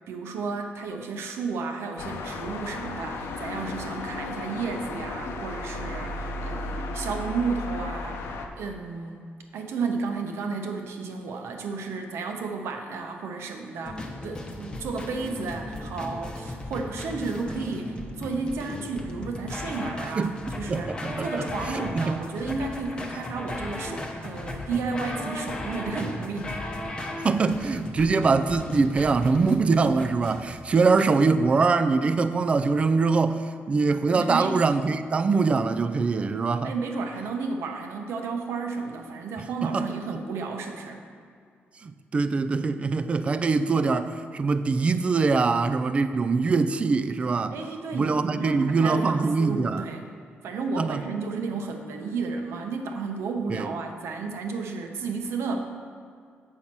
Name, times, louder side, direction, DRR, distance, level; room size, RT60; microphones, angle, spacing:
voice 1, 0.1-8.2 8.6-9.2 9.5-26.6 34.1-34.6 36.6-41.0 47.5-50.1 50.4-55.6, right 4 dB, 80° right, 4 dB, 0.9 m, -32 dB
sound 1, 2.0-8.5, left 2 dB, 80° left, 0.8 m, -34 dB
sound 2, 13.9-31.1, left 1 dB, 20° left, 0.8 m, -36 dB
voice 2, 20.7-21.5 21.7-22.5 27.2-36.7 39.6-39.9 41.8-47.5 47.9-49.8 50.8-51.0 53.5-53.7, right 4 dB, 30° right, 11 dB, 0.3 m, -23 dB
7.9 x 5.6 x 6.0 m, 2.2 s
cardioid pair, 150°, 4 cm